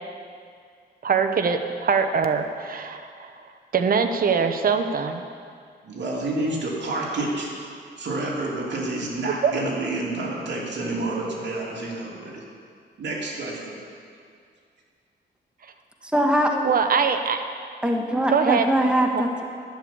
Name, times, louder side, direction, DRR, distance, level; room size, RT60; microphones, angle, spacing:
voice 1, 1.0-3.3 3.7-5.2 9.2-9.5 16.6-17.4 18.3-18.7 19.1-19.2, right 6 dB, 50° right, 7 dB, 0.8 m, -22 dB
voice 2, 5.8-7.5 8.0-12.4 13.0-13.8, right 2 dB, 75° right, -4 dB, 3.0 m, -29 dB
voice 3, 16.1-16.7 17.8-19.4, equal, 5° right, 1 dB, 1.3 m, -22 dB
11.5 x 6.9 x 9.6 m, 2.2 s
cardioid pair, 100°, 19 cm